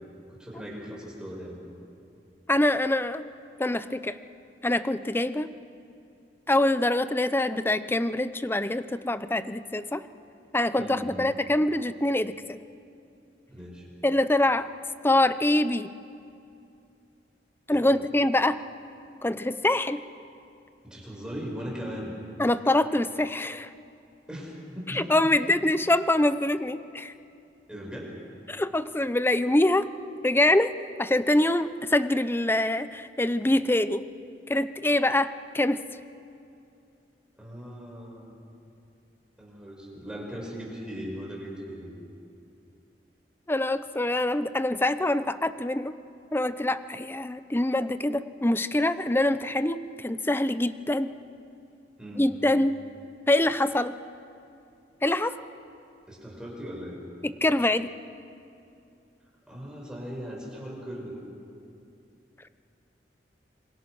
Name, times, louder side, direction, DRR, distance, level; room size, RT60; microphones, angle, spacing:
voice 1, 0.3-1.6 10.8-11.3 13.5-13.9 17.7-17.9 20.8-22.1 24.3-25.1 27.7-28.1 37.4-38.3 39.4-41.9 52.0-52.3 56.1-57.0 59.5-61.2, equal, 5° right, -2 dB, 5.8 m, -38 dB
voice 2, 2.5-3.2 3.6-4.2 4.6-5.5 6.5-10.0 10.5-12.6 14.0-14.7 15.0-15.9 17.7-18.6 19.2-20.0 22.4-23.7 24.9-27.1 28.5-29.9 30.2-30.7 31.0-34.0 34.5-35.8 43.5-45.9 46.3-51.1 52.2-52.7 53.3-53.9 55.0-55.4 57.2-57.9, left 1 dB, 15° left, 13 dB, 0.6 m, -24 dB
27.0 x 23.0 x 6.2 m, 2.6 s
head